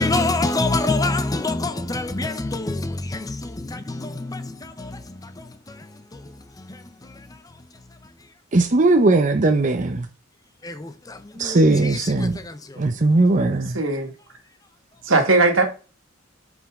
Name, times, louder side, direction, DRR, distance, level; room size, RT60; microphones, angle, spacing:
voice 1, 0.0-6.3 6.6-6.8 10.6-12.8, left 2 dB, 20° left, 0.6 m, -27 dB
voice 2, 8.5-10.1 11.4-12.4 12.8-13.8, right 2 dB, 40° right, 0.7 m, -18 dB
voice 3, 13.7-14.1 15.0-15.6, right 3 dB, 80° right, 1.9 m, -18 dB
7.9 x 5.3 x 3.7 m
head